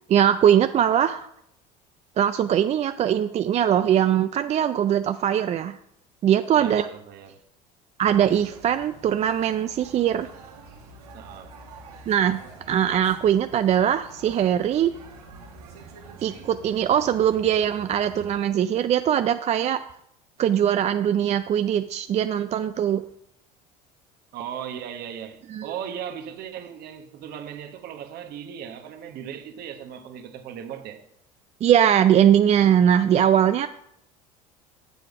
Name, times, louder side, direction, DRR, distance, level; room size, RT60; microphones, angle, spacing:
voice 1, 0.1-1.3 2.2-5.8 6.2-6.9 8.0-10.3 12.1-12.4 12.7-14.9 16.2-19.8 20.4-23.0 25.5-25.7 31.6-33.7, right 10 dB, 35° right, 0.4 m, -21 dB
voice 2, 6.5-7.4 11.1-11.5 24.3-31.0, right 9 dB, 60° right, 1.1 m, -37 dB
sound 1, 8.0-18.3, right 4 dB, 90° right, 1.3 m, -46 dB
7.8 x 7.0 x 4.8 m
hypercardioid pair, 80°, 19 cm